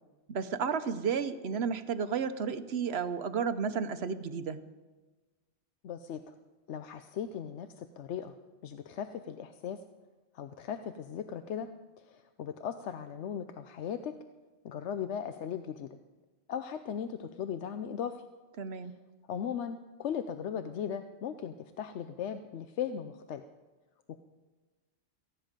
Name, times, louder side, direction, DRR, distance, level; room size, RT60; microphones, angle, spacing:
voice 1, 0.3-4.6 18.6-18.9, right 6 dB, 65° right, 12 dB, 1.0 m, -32 dB
voice 2, 5.8-6.3 6.7-8.3 8.6-9.8 10.3-11.7 12.0-14.1 14.6-15.9 16.5-18.2 19.3-23.4, left 8 dB, 75° left, 9 dB, 0.9 m, -38 dB
18.0 x 15.0 x 5.1 m, 1.2 s
omnidirectional pair, 1.2 m